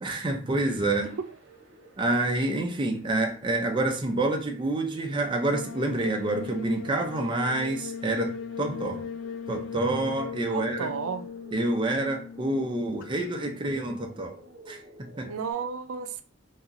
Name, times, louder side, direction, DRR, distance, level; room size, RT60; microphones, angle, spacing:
voice 1, 0.0-1.1 2.0-9.1 9.5-10.9 11.5-14.4 14.7-15.3, right 2 dB, 25° right, 0.4 m, -28 dB
sound 1, 0.6-15.5, right 1 dB, 65° right, 0.9 m, -52 dB
sound 2, 5.4-13.3, left 6 dB, 65° left, 0.3 m, -39 dB
voice 2, 10.5-11.3 15.2-16.2, right 6 dB, 85° right, 0.4 m, -33 dB
2.8 x 2.4 x 3.6 m
head